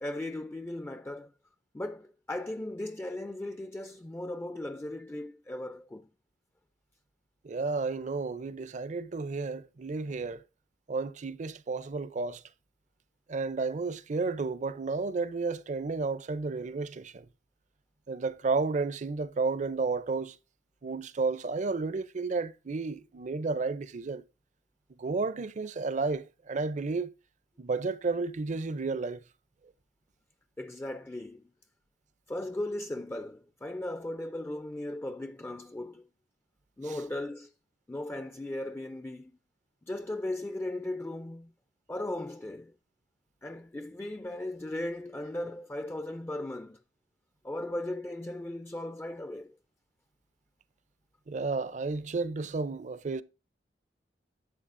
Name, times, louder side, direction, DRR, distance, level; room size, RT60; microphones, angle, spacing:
voice 1, 0.0-1.3 1.7-6.1 30.6-31.4 32.3-36.0 36.8-37.5 37.9-39.3 39.9-41.5 41.9-42.7 43.4-46.8 47.4-49.5, left 1 dB, 15° left, 0.4 m, -37 dB
voice 2, 7.4-10.4 10.9-12.4 13.3-17.2 18.1-20.3 20.8-24.2 25.0-27.1 27.6-29.2 36.9-37.0 51.3-53.2, right 4 dB, 40° right, 0.5 m, -32 dB
11.5 x 7.3 x 2.6 m
head